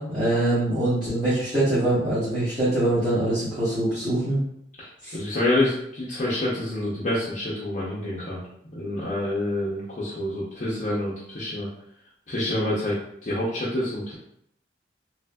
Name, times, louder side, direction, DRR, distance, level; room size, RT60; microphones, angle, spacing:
voice 1, 0.0-4.4 5.0-5.2, right 1 dB, 25° right, -14 dB, 1.3 m, -23 dB
voice 2, 4.8-8.4 8.7-11.7 12.3-14.2, left 1 dB, 40° left, -8 dB, 0.6 m, -27 dB
3.3 x 2.5 x 2.2 m, 0.73 s
head